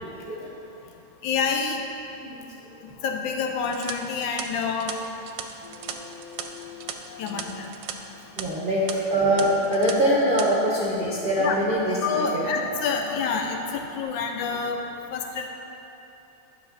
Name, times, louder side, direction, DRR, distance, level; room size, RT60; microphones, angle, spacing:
voice 1, 0.1-0.5 2.2-2.5 8.4-12.4, equal, 50° right, -6 dB, 0.6 m, -23 dB
voice 2, 1.2-1.8 3.0-5.0 7.2-7.7 11.4-11.6 12.0-14.8 15.1-15.5, left 5 dB, 75° left, 3 dB, 1.2 m, -27 dB
sound 1, 3.6-7.9 8.2-8.4 8.9-9.0 9.4-9.9 10.2-10.5, right 8 dB, 75° right, 1.2 m, -36 dB
sound 2, 5.6-8.1 9.0-14.0, left 4 dB, 50° left, 1.4 m, -45 dB
10.5 x 5.6 x 3.9 m, 3.0 s
omnidirectional pair, 2.2 m